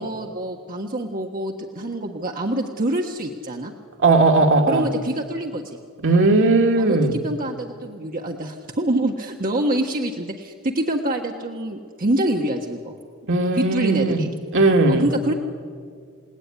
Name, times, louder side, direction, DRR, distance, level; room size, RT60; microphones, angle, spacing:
voice 1, 0.0-3.7 4.7-5.8 6.8-12.9 13.6-14.3 14.9-15.3, right 1 dB, 40° right, 2 dB, 1.5 m, -26 dB
voice 2, 4.0-4.9 6.0-7.2 13.3-14.2 14.5-15.1, right 3 dB, 60° right, 3 dB, 2.4 m, -17 dB
29.0 x 18.0 x 9.9 m, 2.1 s
head